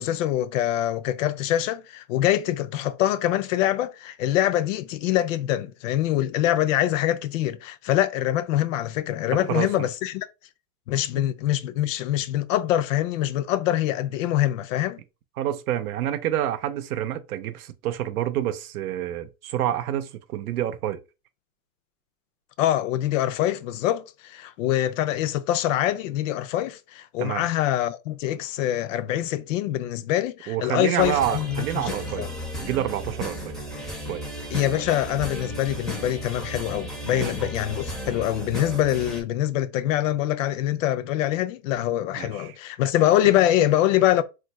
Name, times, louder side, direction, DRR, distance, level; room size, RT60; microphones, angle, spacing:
voice 1, 0.0-10.3 10.9-15.0 22.6-32.3 34.5-44.2, left 12 dB, 65° left, 0.5 m, -24 dB
voice 2, 9.3-9.9 15.4-21.0 27.2-27.5 30.5-32.3 32.6-33.6 34.1-34.3 37.1-37.3 42.2-42.5, right 11 dB, 90° right, 0.7 m, -28 dB
sound 1, 31.0-39.2, equal, ahead, 0.5 m, -34 dB
2.4 x 2.2 x 4.0 m
supercardioid pair, 135°, 43 cm